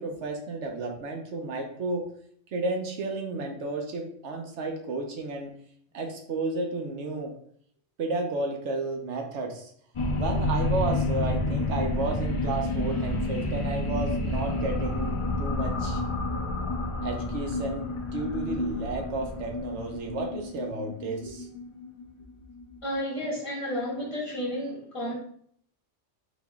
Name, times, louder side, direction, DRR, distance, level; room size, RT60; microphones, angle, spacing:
voice 1, 0.0-2.1 2.5-5.5 5.9-7.3 8.0-9.7 10.1-16.0 17.0-21.5, right 2 dB, 75° right, 2 dB, 1.0 m, -32 dB
sound 1, 9.9-22.8, left 2 dB, 50° left, 0.3 m, -30 dB
voice 2, 22.8-25.2, equal, 25° left, -5 dB, 1.6 m, -32 dB
4.0 x 2.9 x 3.5 m, 0.63 s
omnidirectional pair, 1.2 m